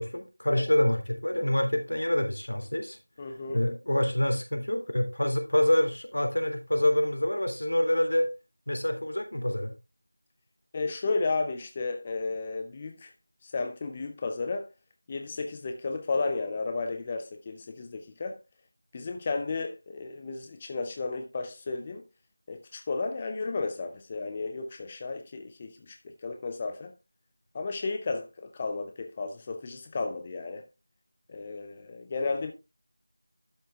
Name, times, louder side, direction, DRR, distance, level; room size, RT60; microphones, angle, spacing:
voice 1, 0.0-3.0 3.5-8.3 8.7-9.7, left 1 dB, 90° left, 3.3 m, -26 dB
voice 2, 3.2-3.7 10.7-13.1 13.4-14.7 15.1-18.4 18.9-22.0 22.5-26.9 27.5-30.7 31.3-32.5, left 3 dB, 10° left, 0.5 m, -33 dB
12.0 x 6.1 x 3.5 m
figure-of-eight pair, 180°, 0 cm